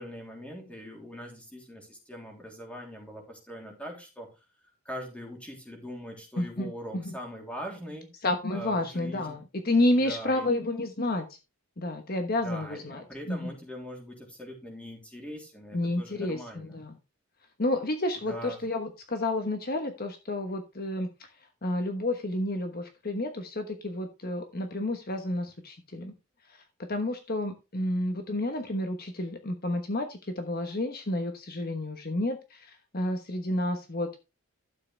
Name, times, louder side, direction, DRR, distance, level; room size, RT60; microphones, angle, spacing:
voice 1, 0.0-4.4 4.8-8.1 8.5-9.4 9.8-10.4 12.4-16.8 18.2-18.6, equal, 5° left, 1 dB, 3.3 m, -42 dB
voice 2, 6.4-7.1 8.2-11.4 11.8-13.5 15.7-17.0 17.6-26.1 26.4-26.6 26.9-34.2, left 1 dB, 40° left, 6 dB, 1.2 m, -30 dB
12.0 x 7.7 x 3.4 m, 0.28 s
head